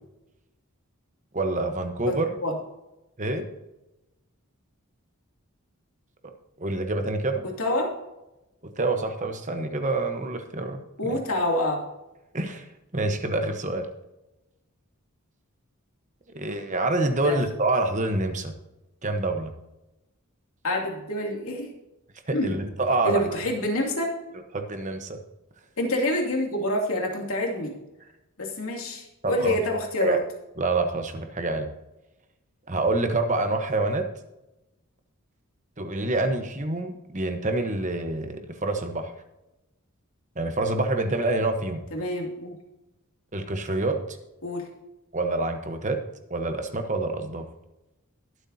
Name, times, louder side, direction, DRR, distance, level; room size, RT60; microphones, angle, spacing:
voice 1, 1.3-2.3 3.2-3.5 6.6-7.4 8.6-11.2 12.3-12.7 12.9-13.9 16.3-18.5 19.0-19.5 22.3-23.2 24.5-25.2 29.2-29.6 30.0-30.2 30.6-31.7 32.7-34.1 35.8-39.1 40.4-41.8 43.3-44.0 45.1-46.0 46.3-47.5, right 2 dB, 35° right, 6 dB, 1.1 m, -27 dB
voice 2, 2.1-2.5 7.6-7.9 11.0-11.8 17.2-17.4 20.6-21.7 22.3-22.6 23.0-24.1 25.8-27.7 28.4-30.2 41.9-42.6 44.4-44.7, left 1 dB, 70° left, 0 dB, 2.8 m, -27 dB
22.0 x 7.9 x 2.8 m, 0.95 s
head